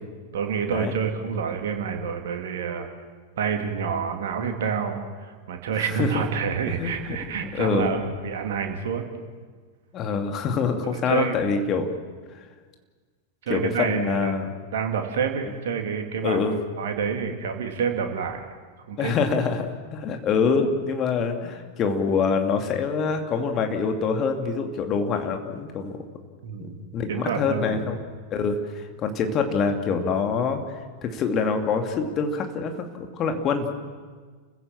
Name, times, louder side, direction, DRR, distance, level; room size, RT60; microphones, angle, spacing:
voice 1, 0.3-2.9 3.4-9.0 10.8-11.4 13.4-14.4 14.7-16.5 16.8-18.5 18.9-19.1 26.4-26.7 27.1-27.9, right 6 dB, 60° right, 4 dB, 2.6 m, -28 dB
voice 2, 5.8-6.2 6.7-7.9 9.9-11.9 13.5-14.5 16.2-16.6 19.0-25.9 26.6-33.7, left 5 dB, 30° left, 5 dB, 2.5 m, -25 dB
30.0 x 15.5 x 7.4 m, 1.5 s
figure-of-eight pair, 90°, 0 cm